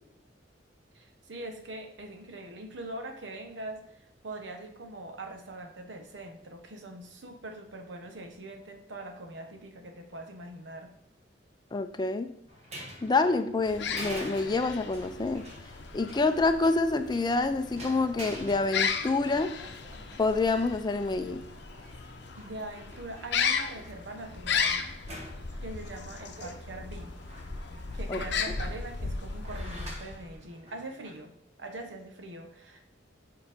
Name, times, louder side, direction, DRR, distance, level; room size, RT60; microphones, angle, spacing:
voice 1, 0.9-10.9 21.8-22.1 22.4-24.9 25.6-27.1 27.9-32.9, right 2 dB, 80° right, 5 dB, 1.0 m, -43 dB
voice 2, 11.7-12.3 13.0-15.4 15.9-19.5 20.2-21.4 28.1-28.2, left 3 dB, 25° left, 8 dB, 0.4 m, -27 dB
sound 1, 12.5-31.2, equal, 35° right, 1.3 m, -48 dB
sound 2, 13.6-30.4, left 6 dB, 65° left, 0.7 m, -35 dB
7.5 x 5.1 x 3.5 m, 0.82 s
head